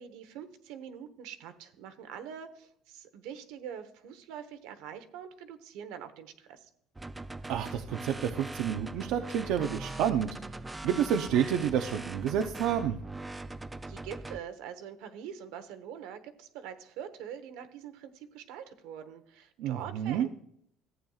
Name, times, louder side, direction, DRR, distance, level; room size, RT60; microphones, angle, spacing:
voice 1, 0.0-6.7 13.9-20.3, right 8 dB, 90° right, 8 dB, 1.1 m, -44 dB
sound 1, 7.0-14.4, right 2 dB, 10° right, 0.3 m, -41 dB
voice 2, 7.5-10.4 10.8-13.0 19.6-20.3, right 9 dB, 75° right, 5 dB, 0.6 m, -29 dB
14.5 x 8.9 x 2.4 m, 0.68 s
cardioid pair, 145°, 0 cm